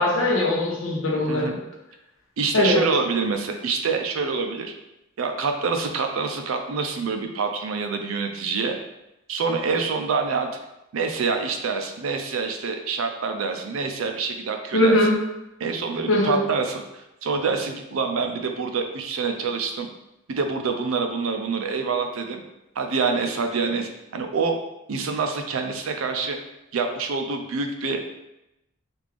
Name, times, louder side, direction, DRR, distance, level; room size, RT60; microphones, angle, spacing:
voice 1, 0.0-1.5 2.5-2.8 14.7-15.1 16.1-16.4, left 1 dB, 65° left, -3 dB, 0.9 m, -20 dB
voice 2, 2.4-4.7 5.2-8.8 9.3-10.5 10.9-15.1 15.6-19.9 20.3-22.4 22.8-24.6 24.9-26.4 26.7-28.0, right 4 dB, 75° right, 5 dB, 0.4 m, -26 dB
3.5 x 2.5 x 3.2 m, 0.90 s
head